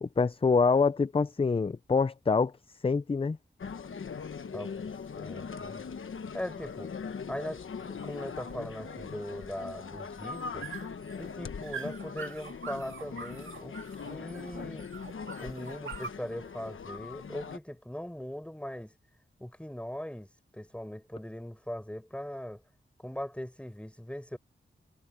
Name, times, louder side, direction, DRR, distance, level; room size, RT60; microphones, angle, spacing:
voice 1, 0.0-2.5 2.8-3.4, left 4 dB, 30° left, 0.5 m, -25 dB
sound 1, 3.6-17.6, left 6 dB, 80° left, 1.2 m, -41 dB
voice 2, 4.5-5.8 6.3-6.9 7.3-10.7 11.2-13.8 14.0-14.9 15.4-18.9 19.4-22.6 23.0-24.4, equal, 5° left, 5.3 m, -40 dB
sound 2, 5.4-16.1, right 6 dB, 80° right, 2.0 m, -46 dB
wide cardioid pair, 90°, 20 cm